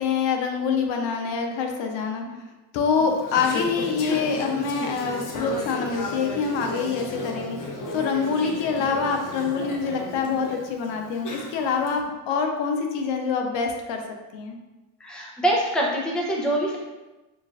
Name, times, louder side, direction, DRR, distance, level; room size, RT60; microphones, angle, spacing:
voice 1, 0.0-2.4 2.7-14.0 14.3-14.6, left 5 dB, 75° left, 3 dB, 0.7 m, -26 dB
Conversation / Chatter, 3.0-11.9, left 2 dB, 45° left, 0.8 m, -34 dB
voice 2, 15.0-16.8, right 1 dB, ahead, -3 dB, 0.5 m, -25 dB
6.1 x 2.5 x 2.4 m, 1.1 s
cardioid pair, 125°, 45 cm